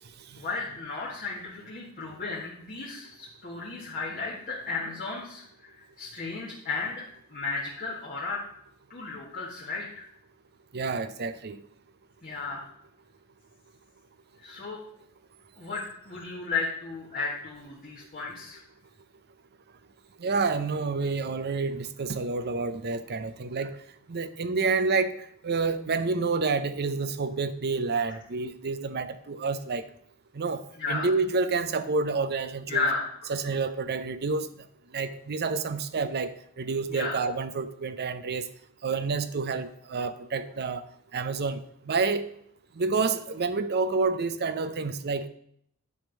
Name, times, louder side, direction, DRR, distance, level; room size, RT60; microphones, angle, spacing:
voice 1, 0.4-7.0 7.3-8.4 8.9-10.0 12.2-12.7 14.4-14.8 15.6-18.6 30.8-31.1 32.7-33.3 36.9-37.2, left 4 dB, 40° left, -6 dB, 1.8 m, -34 dB
voice 2, 10.7-11.6 20.2-23.7 24.1-25.1 25.4-29.8 30.3-30.6 30.9-32.9 33.3-34.5 34.9-38.5 38.8-40.9 41.1-41.6 41.9-42.2 42.8-45.3, right 4 dB, 45° right, 12 dB, 0.6 m, -28 dB
10.5 x 3.7 x 7.2 m, 0.71 s
head